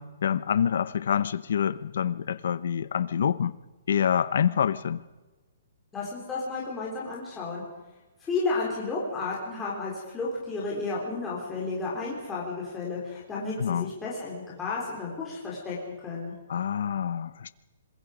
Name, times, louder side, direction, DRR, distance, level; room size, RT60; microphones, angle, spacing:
voice 1, 0.0-3.6 3.9-5.0 13.6-13.9 16.5-17.5, left 8 dB, 60° left, 0.8 m, -26 dB
voice 2, 5.9-7.6 8.2-16.3, left 3 dB, 10° left, 3.9 m, -32 dB
26.0 x 21.5 x 5.1 m
hypercardioid pair, 175°, 0 cm